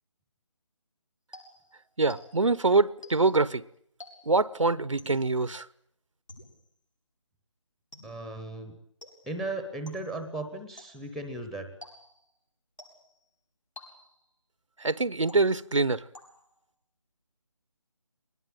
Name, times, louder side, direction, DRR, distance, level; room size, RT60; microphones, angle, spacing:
sound 1, 1.3-2.6 3.0-3.5 4.0-4.5 5.0-5.4 6.3-6.8 7.9-8.4 9.0-9.5 9.9-10.3 10.8-11.2 11.8-12.3 12.8-13.2 13.8-14.3 15.3-15.8 16.1-16.6, left 2 dB, 80° left, 8.0 m, -51 dB
voice 1, 2.0-3.6 4.3-5.7 14.8-16.0, right 3 dB, 75° right, 1.0 m, -24 dB
voice 2, 8.0-8.8 9.3-11.7, right 2 dB, ahead, 1.0 m, -36 dB
23.5 x 20.5 x 8.9 m
figure-of-eight pair, 155°, 16 cm